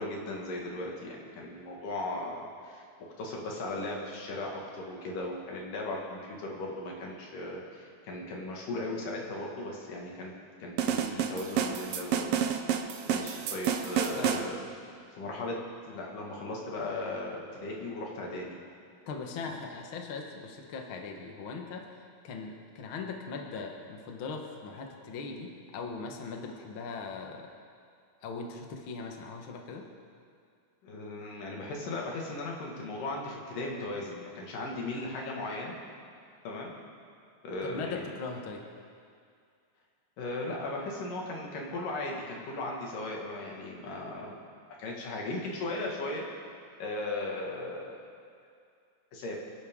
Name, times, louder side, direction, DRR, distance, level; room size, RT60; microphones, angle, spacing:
voice 1, 0.0-2.8 3.2-10.3 10.6-12.4 13.1-14.7 15.2-15.6 15.8-18.6 30.8-35.8 36.5-36.7 37.4-38.0 40.2-44.4 44.8-46.3 46.8-48.1 49.1-49.4, left 2 dB, 80° left, -2 dB, 3.6 m, -37 dB
sound 1, 10.8-14.5, right 8 dB, 75° right, 1.4 m, -30 dB
voice 2, 19.1-27.5 28.2-29.9 37.6-38.6, left 4 dB, 50° left, 2 dB, 1.7 m, -40 dB
28.5 x 11.0 x 3.8 m, 2.3 s
omnidirectional pair, 3.7 m